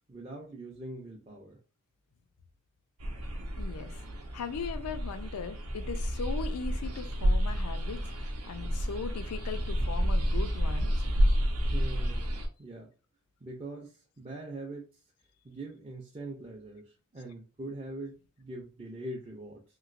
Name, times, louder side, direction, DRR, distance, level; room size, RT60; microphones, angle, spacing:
voice 1, 0.1-1.6 11.7-12.9 13.4-14.9 15.4-19.6, right 2 dB, 25° right, 0.4 m, -42 dB
sound 1, 3.0-12.5, equal, 85° right, 0.6 m, -30 dB
voice 2, 3.6-4.0 4.3-8.0 8.5-10.9, left 5 dB, 90° left, 0.4 m, -39 dB
3.0 x 2.8 x 2.5 m
head